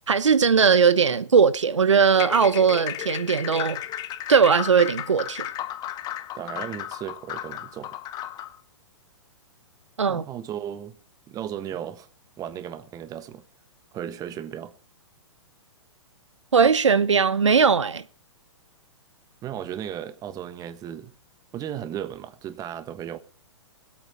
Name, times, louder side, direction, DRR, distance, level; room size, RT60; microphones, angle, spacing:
voice 1, 0.1-3.8 4.3-5.5 10.0-10.2 16.5-18.0, right 6 dB, 75° right, 1.0 m, -19 dB
sound 1, 2.1-8.6, left 12 dB, 25° left, 1.1 m, -34 dB
voice 2, 6.3-8.0 10.0-10.9 11.3-12.1 12.4-13.4 13.9-14.7 19.4-21.1 21.5-23.2, right 10 dB, 25° right, 1.3 m, -35 dB
21.0 x 8.9 x 4.3 m
figure-of-eight pair, 115°, 15 cm